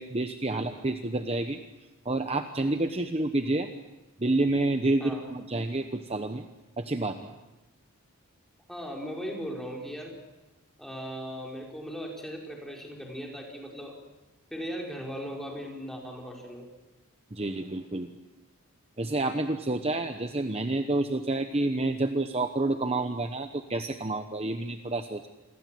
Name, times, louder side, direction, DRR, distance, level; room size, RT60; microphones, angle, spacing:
voice 1, 0.0-1.6 2.0-3.7 4.2-6.5 6.8-7.3 17.3-18.1 19.0-25.3, right 2 dB, 25° right, 7 dB, 1.0 m, -29 dB
voice 2, 8.7-10.1 10.8-14.0 14.5-16.7, equal, ahead, -1 dB, 5.0 m, -38 dB
28.5 x 22.5 x 7.7 m, 1.1 s
head